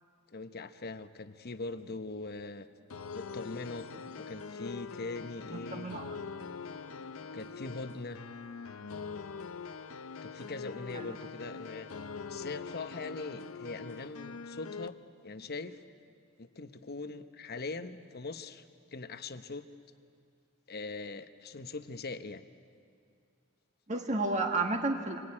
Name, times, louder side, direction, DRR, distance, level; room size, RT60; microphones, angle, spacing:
voice 1, 0.3-2.7 3.1-3.9 4.1-5.9 7.1-8.2 10.2-11.9 12.3-15.0 15.2-15.8 16.4-18.7 18.9-19.6 20.7-22.4, left 3 dB, 50° left, 10 dB, 1.0 m, -41 dB
sound 1, 2.9-14.9, left 5 dB, 75° left, 0.7 m, -43 dB
voice 2, 5.7-6.1 10.9-11.1 23.9-25.2, right 2 dB, 35° right, 3 dB, 1.6 m, -31 dB
26.5 x 22.0 x 9.9 m, 2.3 s
head